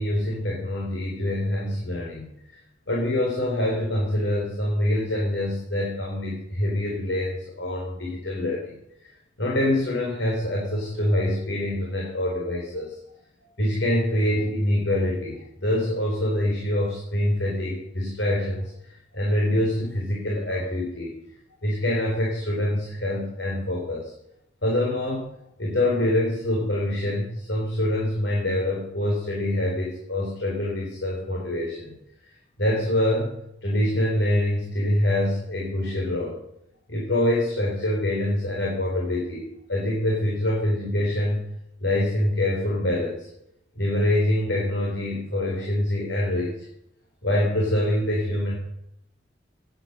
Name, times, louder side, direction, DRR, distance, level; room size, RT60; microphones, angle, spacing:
voice 1, 0.0-2.3 2.9-8.7 9.4-13.0 13.6-18.7 19.1-21.2 21.6-24.1 24.6-25.3 25.6-32.0 32.6-33.3 33.6-36.4 36.9-41.4 41.8-43.3 43.8-46.6 47.2-48.5, left 1 dB, 80° left, -2 dB, 4.0 m, -25 dB
17.0 x 9.5 x 6.7 m, 0.81 s
head